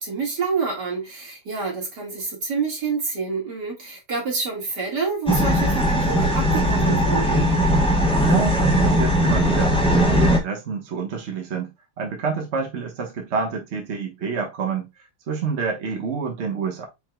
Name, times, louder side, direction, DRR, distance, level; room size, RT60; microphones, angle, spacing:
voice 1, 0.0-7.5, right 4 dB, 70° right, 2.3 m, -28 dB
sound 1, 5.3-10.4, equal, 5° left, 0.7 m, -19 dB
voice 2, 8.2-11.7 12.0-14.9 15.3-16.9, right 5 dB, 45° right, 1.2 m, -28 dB
4.8 x 4.4 x 2.2 m
omnidirectional pair, 1.9 m